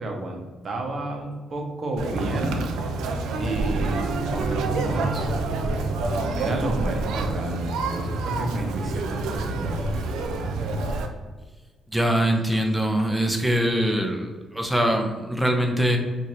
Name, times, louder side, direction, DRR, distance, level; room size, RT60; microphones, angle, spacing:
voice 1, 0.0-2.8 3.4-5.4 6.4-9.9, right 1 dB, 45° right, 2 dB, 0.8 m, -30 dB
Conversation, 2.0-11.1, right 3 dB, 85° right, 0.4 m, -27 dB
voice 2, 11.9-16.0, right 1 dB, 5° right, 3 dB, 0.6 m, -23 dB
2.9 x 2.6 x 4.1 m, 1.3 s
cardioid pair, 90°, 0 cm